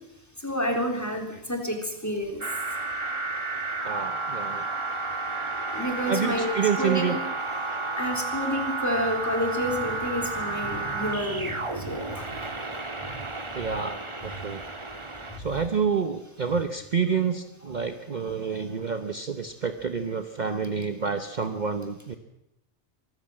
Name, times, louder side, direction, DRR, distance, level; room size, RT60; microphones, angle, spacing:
voice 1, 0.4-2.4 5.7-7.1 8.0-12.5 18.5-18.6, equal, 15° left, 2 dB, 3.6 m, -29 dB
sound 1, 2.4-15.4, right 3 dB, 25° right, 1.5 m, -32 dB
voice 2, 3.8-4.6 6.1-7.2 13.5-14.6 15.4-22.1, right 6 dB, 40° right, 8 dB, 1.0 m, -28 dB
24.0 x 14.5 x 7.6 m, 0.89 s
omnidirectional pair, 1.2 m